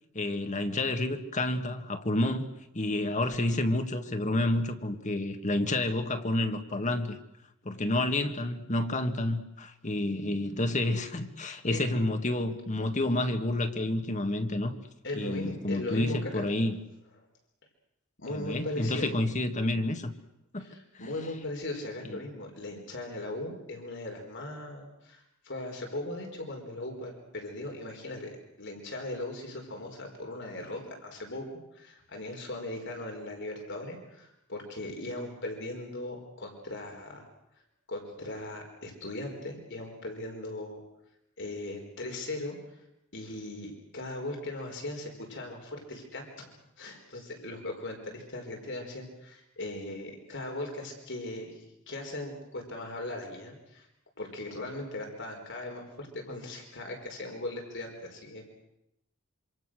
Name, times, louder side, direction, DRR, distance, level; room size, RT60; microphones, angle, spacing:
voice 1, 0.1-2.5 2.7-7.2 7.6-14.7 15.1-16.8 18.3-20.1 20.5-20.7 21.0-21.1 22.1-22.2, left 1 dB, 35° left, 1.7 m, -29 dB
voice 2, 15.0-16.5 18.2-19.1 20.6-31.5 31.7-37.2 37.9-40.8 41.4-42.8 43.1-46.5 46.8-53.9 54.2-58.5, left 2 dB, 60° left, 4.8 m, -38 dB
27.0 x 25.5 x 6.5 m
head